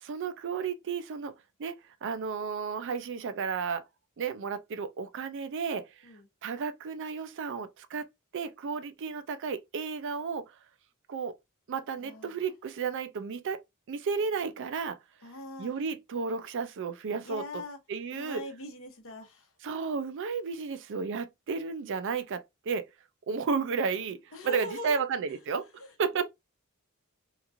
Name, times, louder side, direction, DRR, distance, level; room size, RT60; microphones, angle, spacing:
voice 1, 0.0-1.3 1.6-3.8 4.2-6.1 6.4-8.1 8.3-10.5 11.1-11.3 11.7-13.6 13.9-15.0 15.6-17.6 17.9-18.4 19.6-22.9 23.3-25.7 26.0-26.2, right 5 dB, 55° right, 0.4 m, -33 dB
voice 2, 12.0-12.3 15.2-15.7 17.2-17.8 18.1-19.5 24.3-25.0 25.8-25.9 26.1-26.2, left 2 dB, 65° left, 0.8 m, -41 dB
2.9 x 2.4 x 2.5 m
head